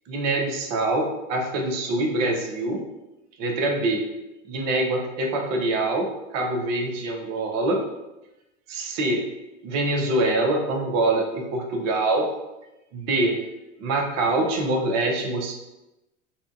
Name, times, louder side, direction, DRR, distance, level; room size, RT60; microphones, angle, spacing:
voice 1, 0.1-2.8 3.4-4.0 4.5-6.1 6.3-7.8 8.7-9.2 9.6-12.3 12.9-13.4 13.8-15.5, right 2 dB, 45° right, 2 dB, 0.6 m, -24 dB
2.6 x 2.1 x 2.6 m, 0.98 s
hypercardioid pair, 85°, 39 cm